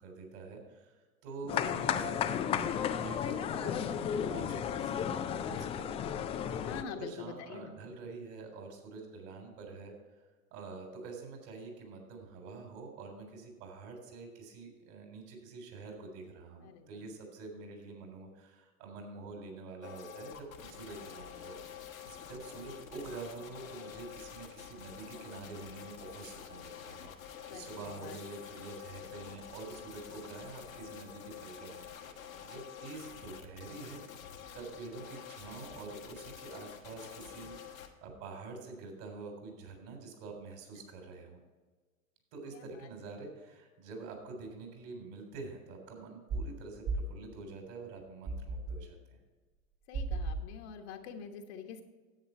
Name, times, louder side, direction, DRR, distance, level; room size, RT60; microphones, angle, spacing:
voice 1, 0.0-6.1 6.9-10.0 10.5-32.1 32.4-34.0 34.5-41.4 42.3-49.2, right 3 dB, 55° right, 3 dB, 3.6 m, -47 dB
voice 2, 1.4-1.8 6.6-7.8 16.6-17.0 20.9-21.0 27.5-28.2 40.8-40.9 42.5-42.9 49.9-51.8, left 7 dB, 55° left, 4 dB, 1.4 m, -46 dB
sound 1, 1.5-6.8, left 9 dB, 15° left, 0.3 m, -33 dB
sound 2, 19.8-37.9, left 8 dB, 75° left, 1.5 m, -48 dB
sound 3, 46.3-46.5 46.9-47.2 48.3-48.9 49.9-50.5, right 3 dB, 35° right, 1.6 m, -35 dB
10.5 x 8.4 x 4.4 m, 1.3 s
figure-of-eight pair, 90°, 40 cm